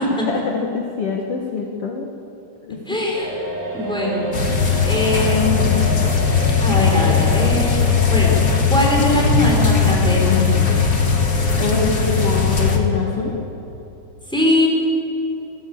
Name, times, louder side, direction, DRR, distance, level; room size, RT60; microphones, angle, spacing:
voice 1, 0.1-2.1 2.6-2.8 11.3-13.3, left 4 dB, 55° left, 2 dB, 2.2 m, -25 dB
voice 2, 2.9-3.3 3.7-4.3 4.8-5.8 6.6-8.4 8.7-10.7 14.3-14.7, left 1 dB, ahead, -2 dB, 5.1 m, -21 dB
sound 1, 3.1-13.3, right 1 dB, 25° right, 3.0 m, -32 dB
sound 2, 4.3-12.8, left 5 dB, 35° left, 1.7 m, -18 dB
25.0 x 16.0 x 8.6 m, 2.9 s
omnidirectional pair, 3.6 m